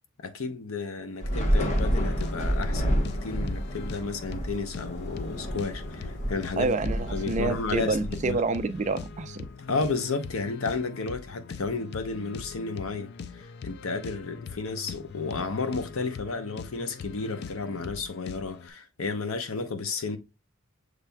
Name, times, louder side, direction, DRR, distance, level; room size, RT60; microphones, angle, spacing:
voice 1, 0.2-6.8 7.1-8.0 8.2-8.4 9.7-20.2, left 4 dB, 80° left, 0.8 m, -32 dB
Thunder / Rain, 1.2-8.7, equal, 35° left, 0.9 m, -29 dB
sound 1, 1.7-18.7, left 5 dB, 55° left, 0.3 m, -42 dB
voice 2, 6.6-9.5, right 3 dB, 35° right, 0.4 m, -28 dB
6.9 x 3.3 x 2.2 m
head